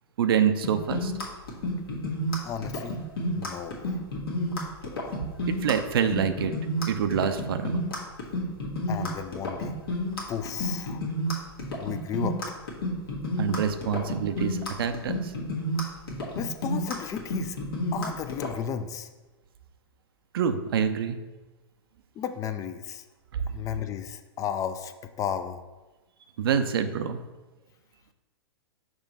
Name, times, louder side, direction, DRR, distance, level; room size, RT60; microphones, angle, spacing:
voice 1, 0.2-1.1 5.5-6.5 6.9-7.8 13.4-15.3 20.3-21.2 26.4-27.2, right 7 dB, 65° right, 9 dB, 0.5 m, -26 dB
sound 1, 0.6-18.5, equal, 70° left, 1.5 m, -30 dB
voice 2, 2.4-3.0 3.4-4.0 8.9-9.7 10.3-11.0 11.8-12.4 16.4-17.6 17.9-19.1 22.2-23.0 23.5-24.9 25.2-25.6, left 8 dB, 25° left, 10 dB, 0.4 m, -33 dB
6.1 x 3.2 x 5.3 m, 1.1 s
figure-of-eight pair, 100°, 13 cm